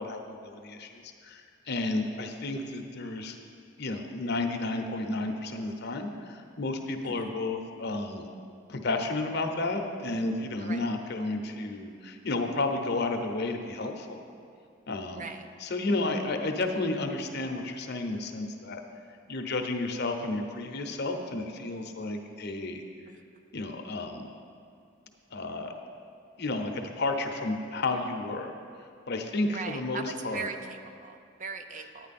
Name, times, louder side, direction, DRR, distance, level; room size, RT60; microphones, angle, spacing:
voice 1, 0.0-3.4 3.8-8.3 8.7-14.2 14.9-15.3 15.6-18.8 19.3-22.8 23.5-24.3 25.3-25.7 26.4-28.5 29.1-30.5 31.7-31.9, left 2 dB, 55° left, 4 dB, 0.8 m, -32 dB
voice 2, 29.5-32.1, right 5 dB, 40° right, 7 dB, 0.5 m, -39 dB
9.6 x 9.5 x 4.2 m, 2.4 s
head